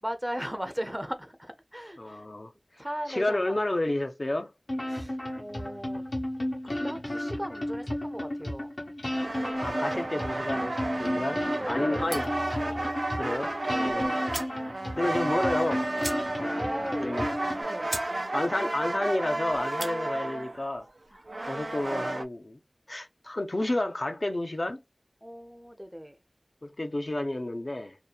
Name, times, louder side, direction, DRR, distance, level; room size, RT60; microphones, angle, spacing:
voice 1, 0.0-2.3 2.8-3.6 4.9-6.0 6.6-8.7 11.6-12.2 13.7-14.4 16.6-17.2 17.6-17.9 21.1-21.3 25.2-26.2, equal, 10° right, 0.5 m, -37 dB
voice 2, 2.0-2.5 3.1-4.5 9.6-11.4 11.7-12.3 13.2-14.1 15.0-15.9 17.0-17.3 18.3-20.9 21.5-22.6 22.9-24.8 26.6-28.0, left 1 dB, 60° left, 0.5 m, -30 dB
sound 1, 4.7-17.6, left 1 dB, 80° left, 1.1 m, -33 dB
sound 2, 9.1-22.3, right 2 dB, 75° right, 0.4 m, -32 dB
sound 3, 12.1-12.5 13.8-13.9 14.3-14.6 15.0-15.1 15.3-15.5 16.0-16.6 16.9-17.0 17.5-17.6 17.9-18.1 18.5-18.8 19.6-20.0, right 1 dB, 50° right, 0.8 m, -38 dB
2.8 x 2.2 x 2.3 m
wide cardioid pair, 40°, 0 cm